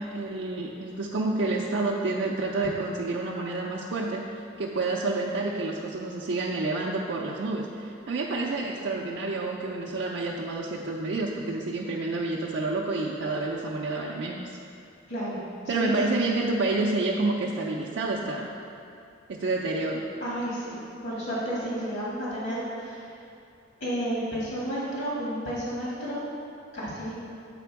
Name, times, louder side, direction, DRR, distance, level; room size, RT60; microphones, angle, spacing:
voice 1, 0.0-4.2 4.6-14.6 15.7-18.5 19.3-20.1, right 2 dB, 65° right, -2 dB, 0.4 m, -29 dB
voice 2, 15.1-15.4 15.6-16.2 20.2-20.7 21.0-23.1 23.8-26.2 26.7-27.2, equal, 60° left, -7 dB, 1.6 m, -31 dB
7.6 x 4.3 x 4.6 m, 2.6 s
head